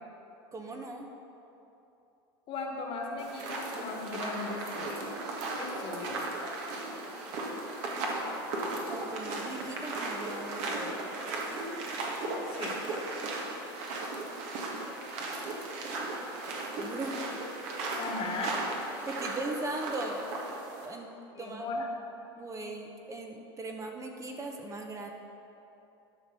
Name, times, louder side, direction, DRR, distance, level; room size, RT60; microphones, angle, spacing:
voice 1, 0.5-1.1 8.9-11.0 16.8-17.2 19.1-20.3 20.8-21.1 21.4-21.7 22.4-25.1, right 2 dB, 25° right, 2 dB, 1.0 m, -39 dB
voice 2, 2.5-5.1 5.6-6.2 12.5-12.8 18.0-18.6 21.4-21.9, left 3 dB, 45° left, 1 dB, 1.8 m, -37 dB
sound 1, 3.2-20.9, right 2 dB, 60° right, 1.8 m, -36 dB
11.5 x 5.3 x 6.0 m, 2.9 s
hypercardioid pair, 95°, 13 cm